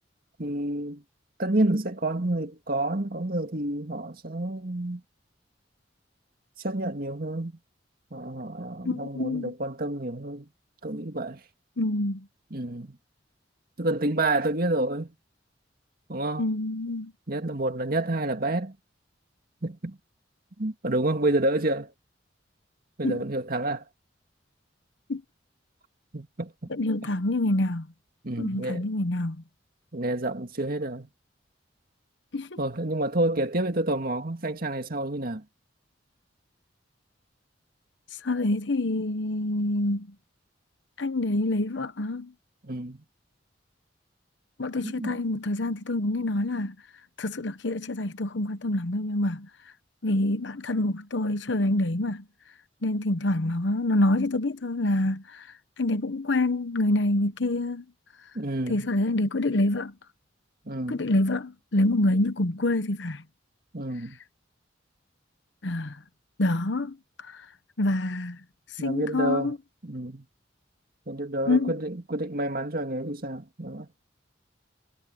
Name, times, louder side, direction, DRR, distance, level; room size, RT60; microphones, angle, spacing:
voice 1, 0.4-1.0 1.4-5.0 6.6-7.5 8.1-10.5 10.8-11.4 12.5-13.0 13.8-15.1 16.1-16.5 17.3-18.8 19.6-20.0 20.6-21.9 23.0-23.8 26.1-26.7 28.2-28.9 29.9-31.1 32.6-35.4 42.6-43.0 44.8-45.2 58.3-58.9 60.7-61.0 63.7-64.2 68.8-69.5 69.8-70.3 71.1-73.9, right 1 dB, 55° right, 2.1 m, -29 dB
voice 2, 8.8-9.5 11.8-12.3 16.4-17.1 23.0-23.2 25.1-25.2 26.7-27.9 28.4-29.4 32.3-32.6 38.2-40.1 41.0-42.3 44.6-46.8 47.2-49.5 50.0-52.3 52.8-55.5 55.8-57.8 58.7-59.9 60.9-63.2 65.6-66.0 66.4-67.5 67.8-68.4 68.7-69.6 71.5-71.7, left 2 dB, 70° left, 1.0 m, -26 dB
head